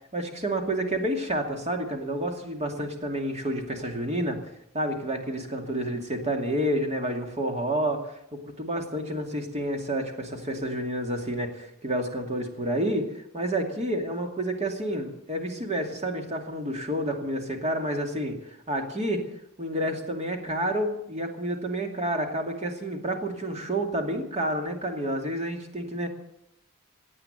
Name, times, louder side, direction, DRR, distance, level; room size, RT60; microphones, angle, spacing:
voice 1, 0.1-4.4 4.7-19.2 19.6-26.1, right 1 dB, 30° right, 4 dB, 2.4 m, -29 dB
16.5 x 8.8 x 9.2 m, 0.80 s
head